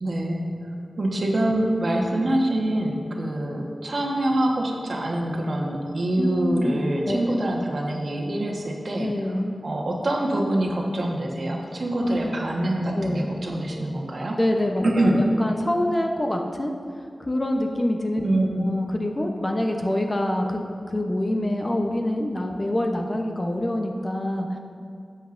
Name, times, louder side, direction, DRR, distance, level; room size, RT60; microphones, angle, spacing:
voice 1, 0.0-0.7 1.0-9.1 9.6-14.4 14.8-15.2 18.2-18.7, right 1 dB, 55° right, -1 dB, 1.2 m, -25 dB
voice 2, 6.2-6.8 7.1-7.4 9.0-9.5 12.0-12.4 12.9-13.3 14.4-16.7 17.2-20.6 20.9-24.6, left 1 dB, 25° left, 2 dB, 0.7 m, -26 dB
12.5 x 8.1 x 2.5 m, 2.3 s
wide cardioid pair, 100°, 0 cm